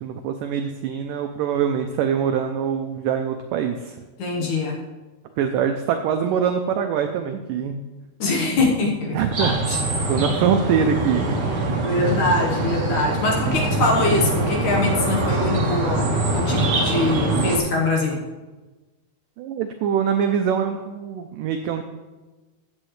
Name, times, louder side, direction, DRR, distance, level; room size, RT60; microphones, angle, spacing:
voice 1, 0.0-4.0 5.4-7.8 9.0-11.4 19.4-21.8, right 8 dB, 85° right, 6 dB, 1.9 m, -24 dB
voice 2, 4.2-4.8 8.2-9.8 11.8-18.2, left 2 dB, 65° left, -1 dB, 2.4 m, -23 dB
sound 1, 9.3-17.6, right 2 dB, 65° right, 0.9 m, -23 dB
14.5 x 8.5 x 3.2 m, 1.2 s
omnidirectional pair, 4.5 m